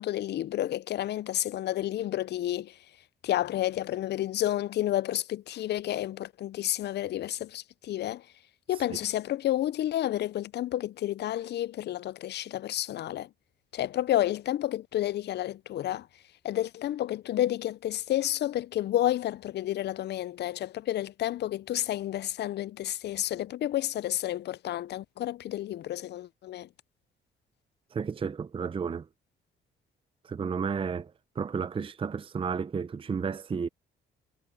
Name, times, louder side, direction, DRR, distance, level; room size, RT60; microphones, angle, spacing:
voice 1, 0.0-2.8 3.2-8.2 8.7-13.3 13.7-16.1 16.4-26.7, left 13 dB, 60° left, 0.5 m, -30 dB
voice 2, 27.9-29.1 30.2-33.7, right 6 dB, 25° right, 0.6 m, -32 dB
cardioid pair, 90°, 20 cm